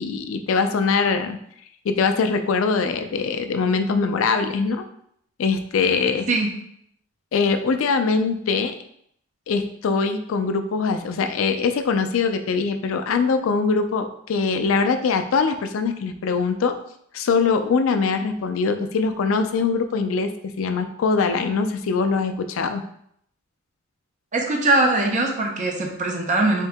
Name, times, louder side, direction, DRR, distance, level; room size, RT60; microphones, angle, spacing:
voice 1, 0.0-1.4 1.8-4.9 5.4-6.3 7.3-8.8 9.5-16.8 17.1-22.8, left 4 dB, 70° left, 8 dB, 0.4 m, -22 dB
voice 2, 24.3-26.7, right 2 dB, 35° right, 1 dB, 0.6 m, -21 dB
3.6 x 2.7 x 3.4 m, 0.70 s
head